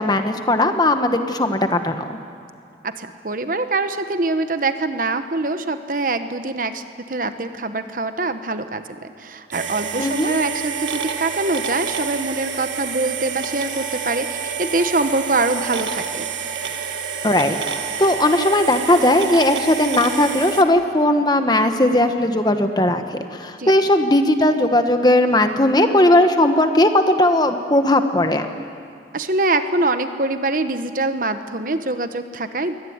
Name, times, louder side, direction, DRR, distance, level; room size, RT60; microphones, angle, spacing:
voice 1, 0.0-2.0 10.0-10.3 17.2-17.6 18.0-28.5, left 1 dB, 20° left, 7 dB, 1.2 m, -17 dB
voice 2, 2.8-16.3 23.6-23.7 29.1-32.8, right 2 dB, 50° right, 9 dB, 1.1 m, -24 dB
sound 1, 9.5-20.6, right 6 dB, 80° right, 1.8 m, -28 dB
23.0 x 18.0 x 9.5 m, 2.4 s
head